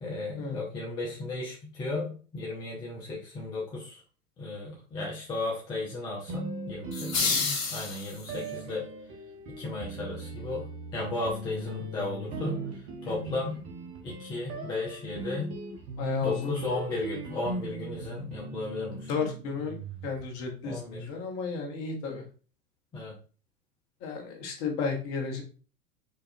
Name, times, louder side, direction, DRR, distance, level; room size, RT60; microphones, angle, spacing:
voice 1, 0.0-4.0 4.4-7.4 7.7-8.8 9.6-10.7 10.9-12.6 13.0-13.6 14.0-15.5 16.2-19.1 20.6-21.1 22.9-23.1, left 2 dB, 10° left, -4 dB, 0.4 m, -35 dB
sound 1, 6.3-7.8 8.3-20.5, right 2 dB, 30° right, 0.9 m, -39 dB
sound 2, 6.9-8.5, left 4 dB, 60° left, 1.1 m, -29 dB
voice 2, 16.0-16.6 19.1-19.8 20.0-22.2 24.0-25.4, left 5 dB, 35° left, 2 dB, 1.0 m, -33 dB
4.8 x 2.3 x 2.7 m, 0.38 s
figure-of-eight pair, 95°, 46 cm